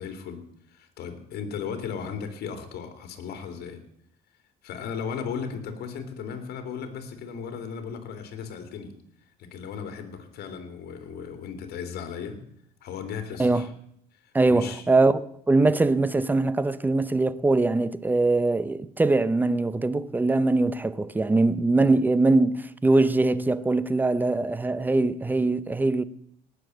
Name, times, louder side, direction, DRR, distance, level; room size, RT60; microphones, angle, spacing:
voice 1, 0.0-3.8 4.6-8.9 9.4-12.4 12.8-13.7 14.1-14.8 21.3-21.4, left 6 dB, 70° left, 2.8 m, -36 dB
voice 2, 14.3-26.0, right 2 dB, 10° right, 0.7 m, -22 dB
18.5 x 7.0 x 7.8 m
cardioid pair, 110°, 17 cm